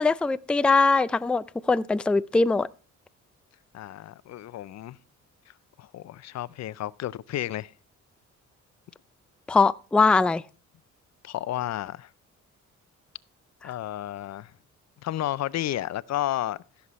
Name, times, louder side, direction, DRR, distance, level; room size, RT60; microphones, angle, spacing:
voice 1, 0.0-2.7 9.5-10.4, left 3 dB, 5° left, 0.4 m, -21 dB
voice 2, 3.7-5.0 5.8-7.7 11.2-12.1 13.6-14.5 15.0-16.6, left 13 dB, 60° left, 0.6 m, -32 dB
15.0 x 7.1 x 3.1 m
cardioid pair, 90°, 30 cm